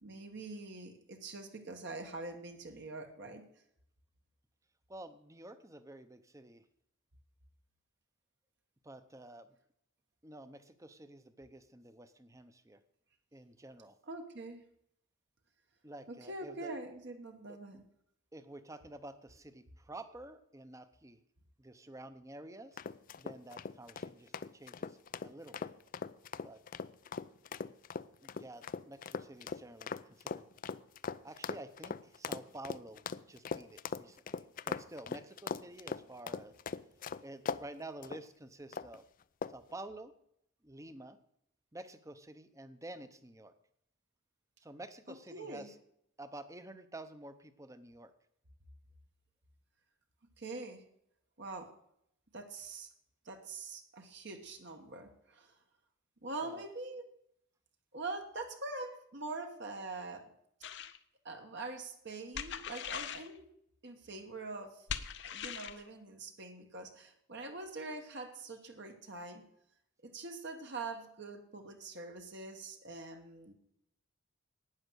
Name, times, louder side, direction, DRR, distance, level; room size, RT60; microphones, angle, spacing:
voice 1, 0.0-3.4 14.1-14.6 16.3-17.8 45.3-45.7 50.4-50.8 51.4-51.7 52.3-52.9 53.2-55.6 56.2-57.0 57.9-60.3 61.2-63.5 63.8-69.4 70.1-73.5, right 3 dB, 55° right, 4 dB, 1.3 m, -44 dB
voice 2, 4.9-6.7 8.8-9.6 10.2-12.8 13.3-14.0 15.8-16.7 17.5-17.6 18.3-21.2 21.6-22.8 23.2-25.7 26.4-26.6 28.2-30.5 31.2-36.5 37.2-39.0 39.5-40.1 40.6-41.2 41.7-43.5 44.6-45.8 46.2-48.1 56.4-56.6, right 1 dB, 15° right, 11 dB, 0.8 m, -50 dB
sound 1, 22.8-37.6 38.0-38.2 38.7-39.0 39.4-39.7, left 5 dB, 40° left, 0.4 m, -40 dB
sound 2, 60.6-61.0 62.3-63.3 64.9-65.8, left 8 dB, 55° left, 0.7 m, -40 dB
12.0 x 9.4 x 6.3 m, 0.74 s
head